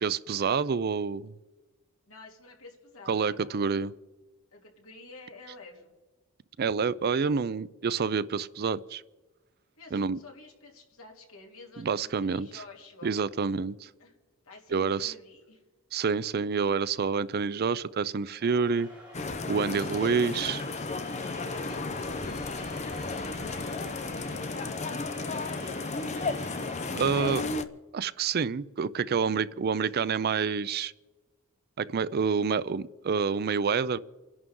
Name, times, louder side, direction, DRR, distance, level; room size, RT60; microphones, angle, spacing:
voice 1, 0.0-1.3 3.1-3.9 6.6-9.0 9.9-10.2 11.8-12.5 13.0-13.9 14.7-15.1 15.9-18.9 19.5-20.6 26.9-27.5 27.9-30.9 31.8-34.0, right 5 dB, 45° right, 17 dB, 0.4 m, -28 dB
voice 2, 2.1-3.6 4.5-5.9 9.8-13.2 14.0-14.2 14.4-15.6 19.7-20.4 21.5-25.7, left 3 dB, 70° left, 0 dB, 3.1 m, -50 dB
sound 1, 18.4-27.4, right 1 dB, 5° right, 5.0 m, -48 dB
sound 2, 19.1-27.6, left 3 dB, 30° left, 0.7 m, -33 dB
29.5 x 11.0 x 3.8 m, 1.2 s
head